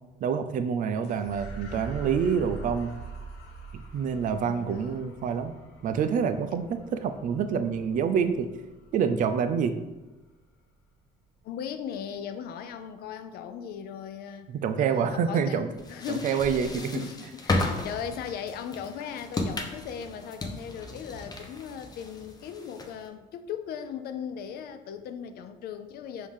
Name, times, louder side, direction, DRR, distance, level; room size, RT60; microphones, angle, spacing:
voice 1, 0.2-2.9 3.7-5.5 5.8-8.5 8.9-9.8 14.5-15.7 16.1-16.9, right 7 dB, 50° right, 9 dB, 0.4 m, -27 dB
sound 1, 1.0-9.7, right 4 dB, 90° left, 0.8 m, -44 dB
voice 2, 4.4-5.2 11.4-14.5 14.8-26.3, left 8 dB, 65° left, 9 dB, 0.4 m, -38 dB
sound 2, 15.8-23.1, left 2 dB, 25° left, 0.6 m, -34 dB
4.7 x 2.7 x 3.6 m, 1.1 s
cardioid pair, 110°, 17 cm